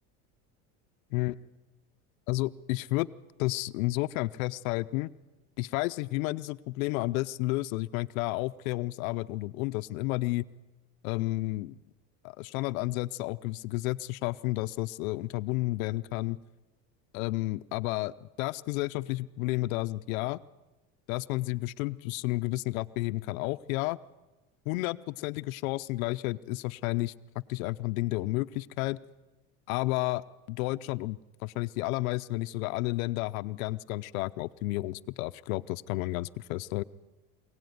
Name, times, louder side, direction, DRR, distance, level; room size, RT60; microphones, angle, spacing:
voice 1, 2.3-3.1 3.4-5.1 5.6-10.4 11.0-11.8 12.2-16.4 17.1-20.4 21.1-24.0 24.7-29.0 29.7-30.2 30.5-36.8, left 20 dB, 85° left, 13 dB, 0.7 m, -31 dB
23.0 x 17.0 x 9.4 m, 1.1 s
supercardioid pair, 95°, 40 cm